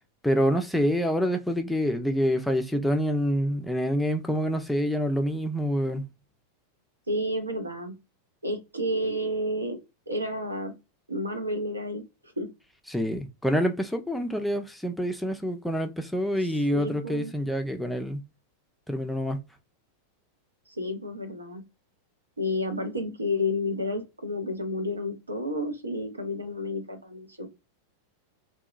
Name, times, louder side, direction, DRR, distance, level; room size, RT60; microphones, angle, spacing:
voice 1, 0.2-6.1 12.9-18.2 18.9-19.4, equal, ahead, 0.4 m, -27 dB
voice 2, 7.1-7.9 8.4-9.8 10.1-10.7 11.1-12.0 12.4-12.5 16.4-17.3 20.7-21.6 22.4-27.5, left 1 dB, 80° right, 0.6 m, -31 dB
2.7 x 2.2 x 2.3 m
figure-of-eight pair, 90°, 0 cm